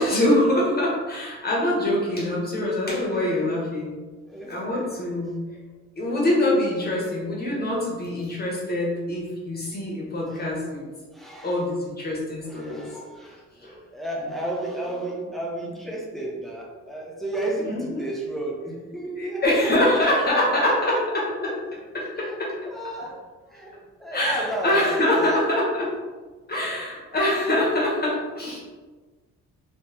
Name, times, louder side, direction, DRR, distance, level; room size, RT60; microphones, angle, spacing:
voice 1, 0.0-3.9 4.5-5.5 6.0-10.8 11.4-12.8 13.6-13.8 17.6-18.0 19.2-21.5 21.9-22.5 24.1-25.9 26.5-28.6, left 1 dB, 30° left, -4 dB, 1.2 m, -24 dB
voice 2, 3.1-3.5 4.3-5.1 5.5-5.6 10.3-10.4 11.1-11.6 12.4-21.0 21.5-21.6 22.2-22.4 22.7-23.2 23.5-23.7 24.0-25.4, right 1 dB, ahead, -3 dB, 0.8 m, -33 dB
3.3 x 3.0 x 3.0 m, 1.3 s
cardioid pair, 90°, 30 cm